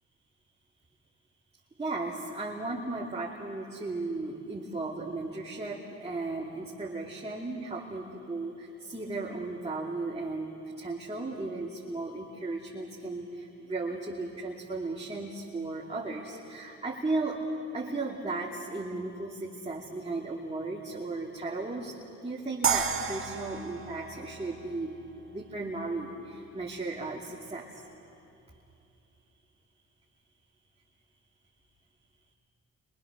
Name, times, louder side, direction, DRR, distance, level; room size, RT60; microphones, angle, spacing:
voice 1, 1.8-17.4 17.7-21.9 22.2-25.0 25.3-27.7, right 3 dB, 20° right, -4 dB, 2.8 m, -35 dB
sound 1, 22.6-25.7, right 6 dB, 45° right, 1.8 m, -32 dB
30.0 x 24.5 x 6.5 m, 2.9 s
cardioid pair, 90°, 30 cm